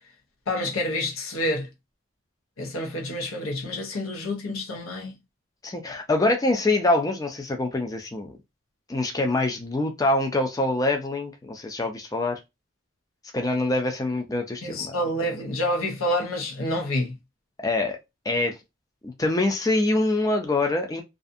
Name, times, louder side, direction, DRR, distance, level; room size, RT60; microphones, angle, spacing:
voice 1, 0.5-1.7 2.6-5.2 14.6-17.1, left 1 dB, 80° left, 0.8 m, -28 dB
voice 2, 5.6-8.4 8.9-12.4 13.3-14.9 17.6-18.0 18.3-18.6 19.0-21.0, left 2 dB, 15° left, 0.4 m, -25 dB
2.5 x 2.4 x 2.5 m
head